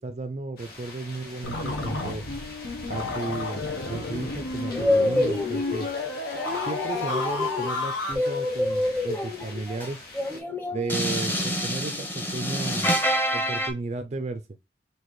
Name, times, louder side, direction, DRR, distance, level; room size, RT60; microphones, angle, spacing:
voice 1, 0.0-2.2 2.9-3.6 3.9-5.9 6.6-10.0 10.7-12.9 13.3-14.4, right 3 dB, 35° right, 0.4 m, -34 dB
sound 1, 0.6-10.4, left 2 dB, 55° left, 2.0 m, -44 dB
sound 2, 1.4-8.1, left 3 dB, 85° left, 1.1 m, -31 dB
sound 3, 4.7-5.9 6.3-13.7, left 1 dB, 10° left, 0.7 m, -27 dB
5.9 x 2.8 x 3.1 m
head